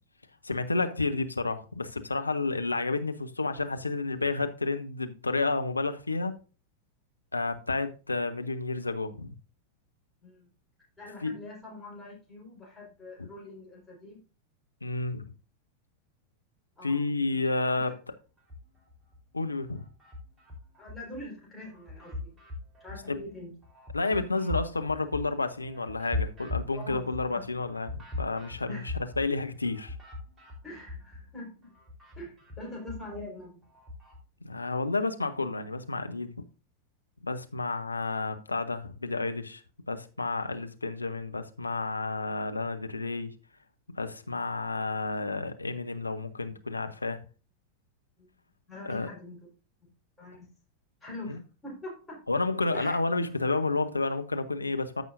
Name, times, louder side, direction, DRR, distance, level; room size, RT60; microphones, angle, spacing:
voice 1, 0.4-6.4 7.3-9.3 11.2-11.3 13.2-13.3 14.8-15.3 16.8-18.0 19.3-19.8 23.1-23.2 23.9-28.8 29.2-29.9 34.4-36.3 37.2-39.6 39.9-43.3 43.9-47.2 48.9-49.1 52.3-55.0, left 3 dB, 80° left, 0.8 m, -30 dB
voice 2, 11.0-14.2 16.8-17.9 20.8-22.3 22.8-23.5 26.7-27.4 28.7-28.9 30.6-31.7 32.2-33.6 48.2-48.3 48.7-49.4 50.2-50.5 51.0-52.2 52.7-53.0, left 1 dB, 10° left, 4.4 m, -44 dB
sound 1, 18.4-19.2 19.6-21.2 21.6-31.3 31.6-34.2, left 3 dB, 10° right, 3.8 m, -40 dB
14.0 x 5.5 x 2.6 m
figure-of-eight pair, 90°, 0 cm